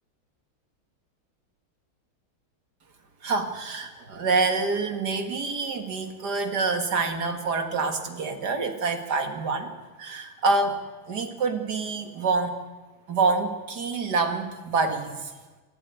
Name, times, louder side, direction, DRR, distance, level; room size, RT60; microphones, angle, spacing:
voice 1, 3.2-9.7 10.0-12.6 13.1-15.3, right 4 dB, 55° right, 7 dB, 2.3 m, -27 dB
27.5 x 11.5 x 9.3 m, 1.2 s
omnidirectional pair, 2.3 m